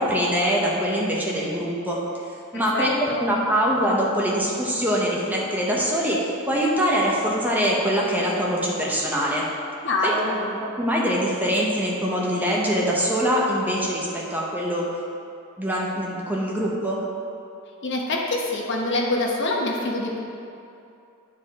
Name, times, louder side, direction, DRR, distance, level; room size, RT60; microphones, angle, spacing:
voice 1, 0.0-2.0 2.5-6.2 6.5-9.4 10.0-14.9 15.6-17.0, equal, 10° right, -4 dB, 0.8 m, -23 dB
voice 2, 2.5-3.2 9.8-10.4 17.8-20.2, left 2 dB, 55° left, -1 dB, 0.9 m, -25 dB
10.5 x 4.6 x 3.5 m, 2.7 s
head